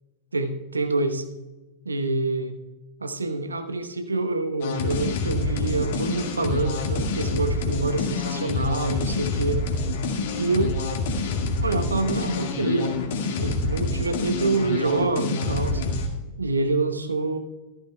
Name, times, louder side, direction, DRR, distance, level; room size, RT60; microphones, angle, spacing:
voice 1, 0.3-1.2 1.8-2.5 3.0-9.6 10.4-10.8 11.6-15.8 16.4-17.4, right 3 dB, 80° right, 7 dB, 1.0 m, -26 dB
sound 1, 4.6-16.1, left 3 dB, 55° left, 1.8 m, -27 dB
14.5 x 13.5 x 2.3 m, 1.1 s
figure-of-eight pair, 90°, 0 cm